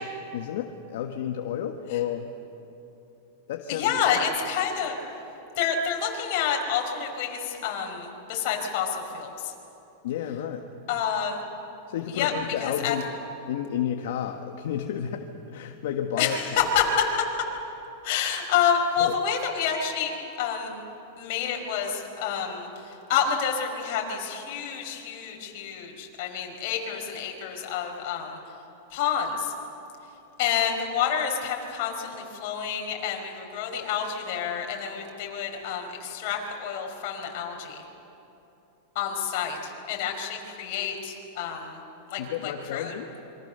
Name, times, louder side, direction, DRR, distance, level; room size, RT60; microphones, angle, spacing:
voice 1, 0.3-2.3 3.5-4.0 10.0-10.6 11.9-13.0 13.5-16.4 19.0-19.1 42.2-43.1, left 10 dB, 70° left, 4 dB, 1.5 m, -31 dB
voice 2, 3.7-5.0 5.6-9.5 10.9-11.4 12.1-12.3 12.6-13.0 16.2-16.9 18.0-20.1 20.4-20.8 21.2-28.4 28.9-29.5 30.4-37.8 38.9-41.8 42.1-42.9, left 8 dB, 55° left, 1 dB, 5.1 m, -28 dB
27.5 x 24.5 x 6.8 m, 2.9 s
supercardioid pair, 145°, 0 cm